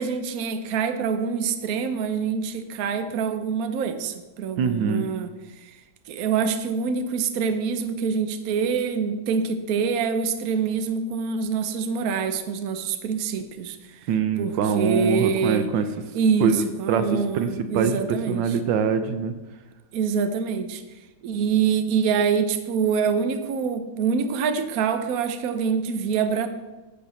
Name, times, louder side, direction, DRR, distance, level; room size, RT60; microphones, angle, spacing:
voice 1, 0.0-5.3 5.6-5.8 6.1-14.1 14.4-15.7 16.1-18.4 19.9-20.8 21.2-26.5, right 6 dB, 60° right, 8 dB, 1.1 m, -25 dB
voice 2, 4.6-5.1 14.1-15.8 16.4-19.3, right 6 dB, 80° right, 10 dB, 1.4 m, -24 dB
9.9 x 4.6 x 6.8 m, 1.1 s
omnidirectional pair, 2.0 m